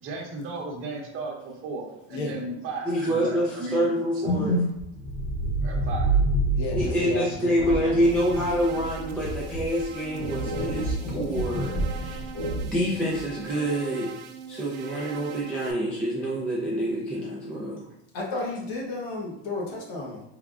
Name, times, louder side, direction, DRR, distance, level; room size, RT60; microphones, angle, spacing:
voice 1, 0.0-4.3 5.6-6.2 19.8-19.9, right 3 dB, 45° right, 0 dB, 0.9 m, -35 dB
voice 2, 2.9-4.6 6.7-12.3 12.6-14.1 14.5-17.8, equal, 5° left, -6 dB, 0.5 m, -27 dB
sound 1, 4.2-13.4, right 1 dB, 40° left, 0.7 m, -28 dB
voice 3, 6.5-7.9 18.1-20.2, left 3 dB, 80° left, -3 dB, 1.1 m, -32 dB
sound 2, 8.0-15.7, right 8 dB, 65° right, 0.5 m, -42 dB
3.5 x 3.4 x 2.4 m, 0.83 s
cardioid pair, 140°, 30 cm